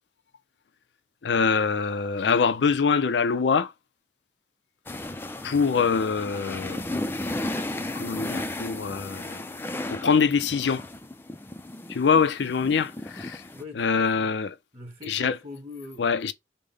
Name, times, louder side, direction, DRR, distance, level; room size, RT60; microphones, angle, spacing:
voice 1, 1.2-3.7 5.4-6.8 7.9-9.4 9.9-10.8 11.9-13.4 13.8-14.5 15.1-15.3 16.0-16.3, left 5 dB, 85° left, 0.5 m, -24 dB
sound 1, 4.9-13.6, left 1 dB, 15° left, 0.4 m, -34 dB
voice 2, 13.5-14.3 14.7-16.2, left 3 dB, 35° right, 1.7 m, -42 dB
5.2 x 2.1 x 3.3 m
head